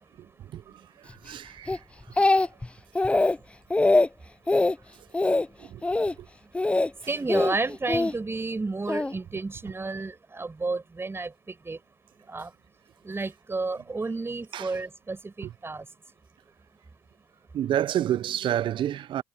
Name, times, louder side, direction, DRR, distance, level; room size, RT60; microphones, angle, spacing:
voice 1, 1.2-1.8 2.2-2.3 5.6-5.8 14.5-14.7 17.5-19.2, right 11 dB, 60° right, 0.5 m, -28 dB
Speech, 1.7-2.7 2.9-3.4 3.7-4.1 4.5-4.7 5.1-5.5 5.8-6.1 6.5-6.9 7.3-8.1 8.9-9.1, left 2 dB, 10° left, 0.4 m, -22 dB
voice 2, 7.1-11.3 11.7-11.8 12.3-12.5 13.0-15.8, right 3 dB, 25° right, 6.9 m, -31 dB
hypercardioid pair, 60°, 9 cm